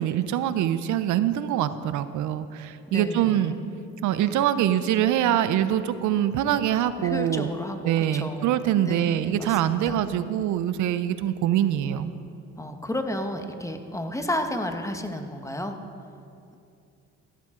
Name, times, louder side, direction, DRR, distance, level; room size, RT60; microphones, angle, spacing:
voice 1, 0.0-3.5 4.0-7.5 7.8-12.1, right 11 dB, 80° right, 13 dB, 0.6 m, -24 dB
voice 2, 2.9-3.5 7.0-10.0 12.6-15.8, left 1 dB, 10° left, 6 dB, 1.1 m, -32 dB
15.0 x 12.0 x 3.8 m, 2.5 s
cardioid pair, 90°, 30 cm